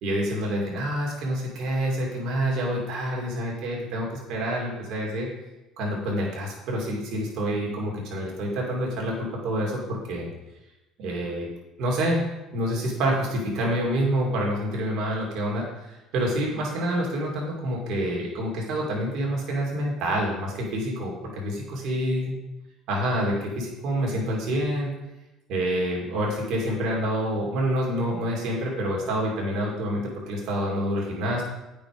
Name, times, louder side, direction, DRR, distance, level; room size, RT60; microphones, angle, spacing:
voice 1, 0.0-5.3 5.8-10.3 11.0-11.5 11.8-12.2 12.5-22.4 22.9-24.9 25.5-31.4, equal, 65° right, -3 dB, 2.7 m, -27 dB
8.6 x 5.3 x 4.9 m, 0.99 s
hypercardioid pair, 70°, 0 cm